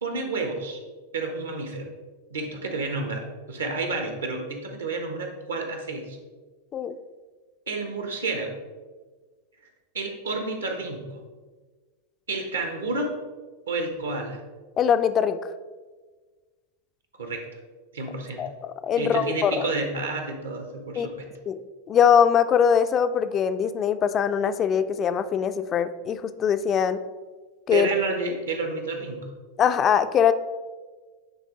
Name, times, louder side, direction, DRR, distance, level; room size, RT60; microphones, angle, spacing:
voice 1, 0.0-0.8 1.1-1.9 2.3-6.2 7.7-8.6 9.9-11.0 12.3-13.1 13.7-14.4 17.2-17.4 17.9-18.4 19.0-21.3 27.7-29.3, right 3 dB, 70° right, 4 dB, 1.1 m, -30 dB
voice 2, 14.8-15.4 18.4-19.7 21.0-21.1 21.5-21.6 21.9-27.0 27.7-27.9 29.6-30.3, left 8 dB, 30° left, 11 dB, 0.4 m, -22 dB
10.0 x 3.4 x 3.8 m, 1.4 s
figure-of-eight pair, 90°, 0 cm